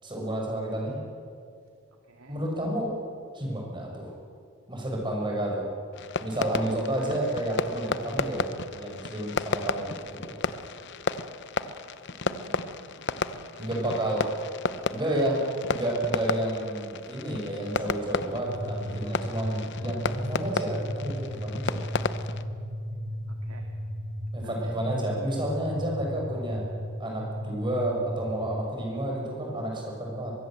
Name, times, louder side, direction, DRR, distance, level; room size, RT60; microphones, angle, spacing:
voice 1, 0.0-1.0 2.3-2.9 3.3-4.1 4.7-5.7 6.2-8.5 8.7-9.9 10.2-10.3 13.6-14.2 14.9-15.4 15.7-21.8 24.3-26.6 27.0-30.3, right 1 dB, 25° right, -1 dB, 6.6 m, -30 dB
voice 2, 2.1-2.4 12.2-13.1 13.3-14.3 23.4-23.8 24.4-25.0, right 2 dB, 90° right, 3 dB, 2.2 m, -48 dB
Fireworks, 5.9-22.4, left 4 dB, 55° left, 0.8 m, -33 dB
sound 1, 18.4-28.6, equal, 60° right, 4.0 m, -35 dB
23.0 x 23.0 x 7.7 m, 2.2 s
head